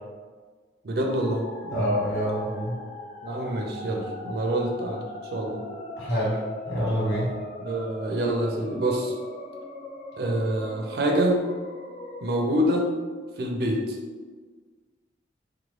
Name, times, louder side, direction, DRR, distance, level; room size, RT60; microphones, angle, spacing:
voice 1, 0.8-1.9 3.2-5.0 5.3-5.6 7.6-9.1 10.2-11.4 12.2-12.9 13.4-14.0, right 1 dB, 55° right, 1 dB, 0.4 m, -26 dB
sound 1, 1.1-12.5, left 1 dB, 35° left, 0.3 m, -40 dB
voice 2, 1.7-2.8 6.0-7.4, equal, 65° left, -8 dB, 1.3 m, -27 dB
2.9 x 2.2 x 3.1 m, 1.4 s
head